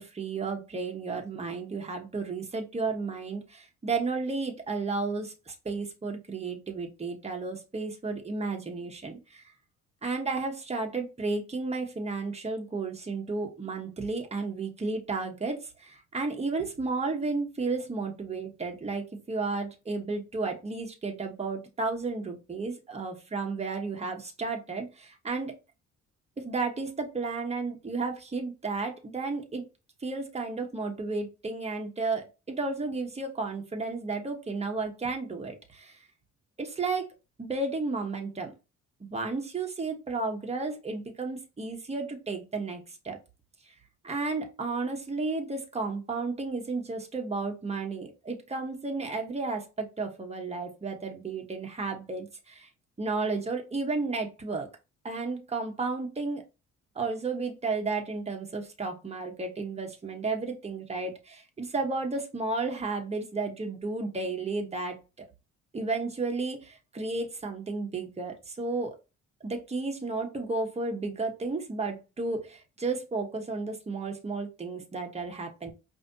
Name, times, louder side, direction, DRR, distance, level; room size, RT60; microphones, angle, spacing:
voice 1, 0.0-9.4 10.0-25.6 26.4-29.6 30.0-36.0 36.6-37.1 37.4-38.5 39.0-43.2 44.0-52.7 53.0-54.7 55.0-56.4 56.9-65.2 65.7-68.9 69.4-75.7, right 3 dB, 20° right, 1.1 m, -33 dB
5.0 x 2.8 x 2.7 m
cardioid pair, 90°, 30 cm